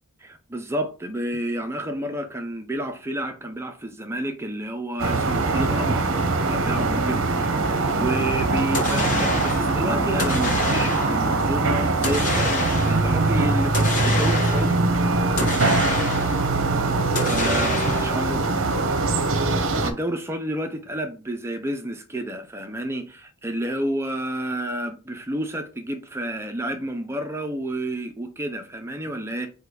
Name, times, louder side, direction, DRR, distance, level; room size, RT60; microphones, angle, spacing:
voice 1, 0.2-6.1 6.5-14.9 17.2-18.5 19.8-29.5, right 1 dB, 10° right, 0.4 m, -30 dB
sound 1, 5.0-19.9, right 3 dB, 60° right, 0.7 m, -22 dB
sound 2, 8.7-9.7 10.2-11.2 12.0-13.1 13.7-14.8 15.4-16.5 17.2-18.2, left 3 dB, 35° left, 0.9 m, -28 dB
4.9 x 2.3 x 4.8 m
head